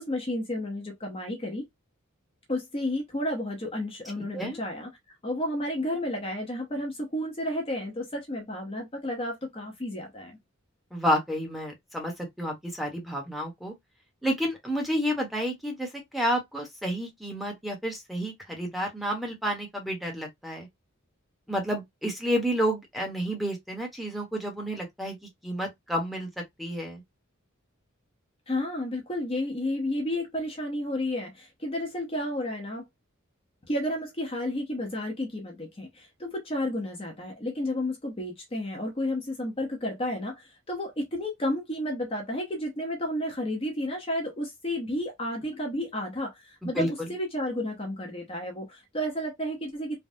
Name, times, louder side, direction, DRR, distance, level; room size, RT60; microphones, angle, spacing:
voice 1, 0.0-1.6 2.5-4.9 5.2-10.4 28.5-32.8 33.7-50.0, left 1 dB, 25° left, 0.8 m, -32 dB
voice 2, 10.9-13.7 14.2-20.7 21.5-25.2 25.4-26.3 26.6-27.0 46.7-47.1, equal, ahead, 1.0 m, -30 dB
3.4 x 2.1 x 2.7 m
head